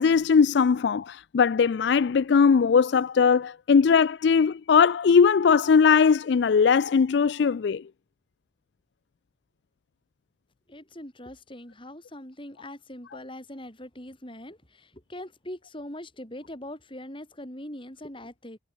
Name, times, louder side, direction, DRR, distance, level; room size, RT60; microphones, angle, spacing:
voice 1, 0.0-7.8, left 6 dB, 65° left, 0.4 m, -20 dB
voice 2, 10.7-18.6, left 1 dB, 25° left, 5.1 m, -42 dB
head